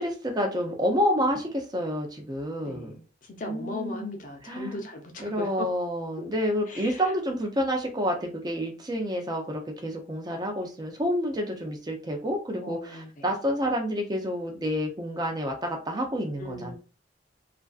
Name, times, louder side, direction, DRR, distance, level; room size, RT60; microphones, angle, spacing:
voice 1, 0.0-3.0 3.5-4.1 4.4-4.9 5.2-16.8, equal, 20° right, 2 dB, 0.4 m, -29 dB
voice 2, 2.6-5.7 6.7-7.1 12.5-13.2 16.4-16.8, left 2 dB, 45° left, 3 dB, 0.5 m, -38 dB
2.4 x 2.3 x 2.3 m, 0.34 s
head